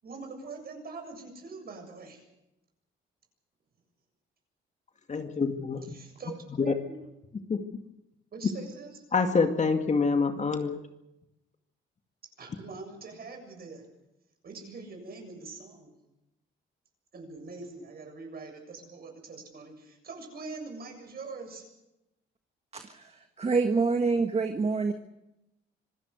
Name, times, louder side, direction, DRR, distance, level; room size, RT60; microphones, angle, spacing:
voice 1, 0.0-2.2 5.8-6.9 8.3-9.0 12.2-13.8 14.4-15.9 17.1-21.7, right 3 dB, 50° right, 4 dB, 7.4 m, -43 dB
voice 2, 5.1-5.9 6.6-6.7 7.5-7.8 9.1-10.9, left 4 dB, 35° left, 6 dB, 2.1 m, -26 dB
voice 3, 22.7-24.9, right 4 dB, 30° right, 6 dB, 1.6 m, -27 dB
26.0 x 17.0 x 6.5 m, 0.90 s
cardioid pair, 90°, 20 cm